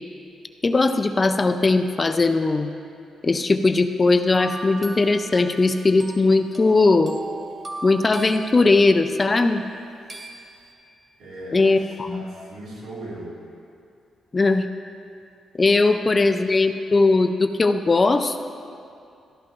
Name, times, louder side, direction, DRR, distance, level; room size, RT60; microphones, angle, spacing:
voice 1, 0.6-2.7 3.2-7.2 7.8-9.6 11.5-12.2 14.3-14.7 15.6-18.4, left 3 dB, 20° left, 8 dB, 0.3 m, -19 dB
sound 1, 4.4-9.1 10.1-10.6, right 3 dB, 25° right, 0.9 m, -38 dB
voice 2, 11.2-13.4 16.1-16.3, right 1 dB, 85° right, -6 dB, 3.0 m, -39 dB
14.0 x 11.5 x 3.0 m, 2.5 s
wide cardioid pair, 180°, 0 cm